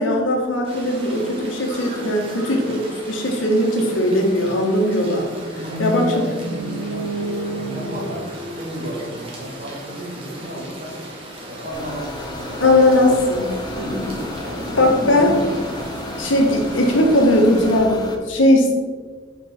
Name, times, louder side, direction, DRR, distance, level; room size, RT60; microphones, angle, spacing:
voice 1, 0.0-5.3 5.8-6.3 12.6-13.5 14.8-15.5 16.2-18.7, left 1 dB, 85° left, 1 dB, 1.7 m, -18 dB
sound 1, 0.6-17.8, equal, 30° right, 1.9 m, -35 dB
sound 2, 5.4-9.5, equal, 90° right, 1.3 m, -30 dB
voice 2, 5.5-11.0 11.4-14.9, equal, 50° right, -2 dB, 2.1 m, -34 dB
sound 3, 11.7-18.2, left 1 dB, 20° left, 0.8 m, -33 dB
7.5 x 5.7 x 4.5 m, 1.5 s
head